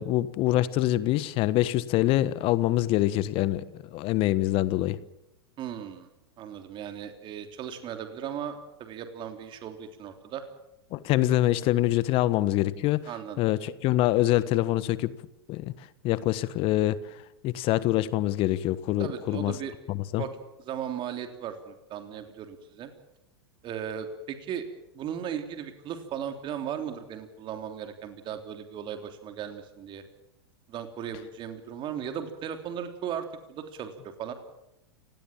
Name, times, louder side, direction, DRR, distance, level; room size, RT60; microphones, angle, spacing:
voice 1, 0.0-5.0 10.9-13.0 13.4-15.1 15.5-15.7 16.0-17.0 17.4-19.5 19.9-20.2, left 15 dB, 45° left, 17 dB, 1.3 m, -25 dB
voice 2, 5.6-6.1 6.4-10.4 13.0-13.4 19.0-19.7 20.2-20.3 20.6-22.9 23.6-24.6 24.9-30.0 30.7-34.3, right 9 dB, 35° right, 7 dB, 3.3 m, -37 dB
30.0 x 18.0 x 7.5 m, 0.87 s
hypercardioid pair, 95°, 13 cm